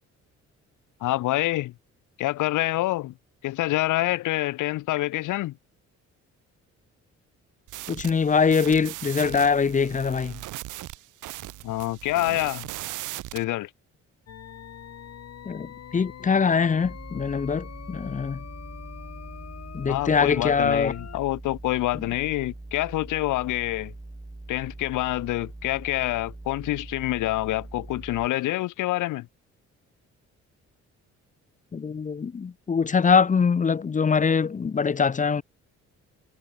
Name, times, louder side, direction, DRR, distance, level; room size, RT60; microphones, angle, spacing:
voice 1, 1.0-1.7 2.2-3.1 3.4-5.6 11.6-12.7 13.3-13.7 19.9-23.9 24.5-29.3, left 16 dB, 90° left, 1.5 m, -27 dB
sound 1, 7.7-13.4, right 17 dB, 90° right, 1.4 m, -38 dB
voice 2, 7.9-10.4 15.4-18.4 19.7-20.9 21.9-22.0 31.7-35.4, left 5 dB, 25° left, 0.7 m, -23 dB
sound 2, 14.3-21.2, left 9 dB, 55° left, 2.7 m, -44 dB
sound 3, 16.8-28.3, right 2 dB, 10° right, 2.7 m, -42 dB
cardioid pair, 90°, 30 cm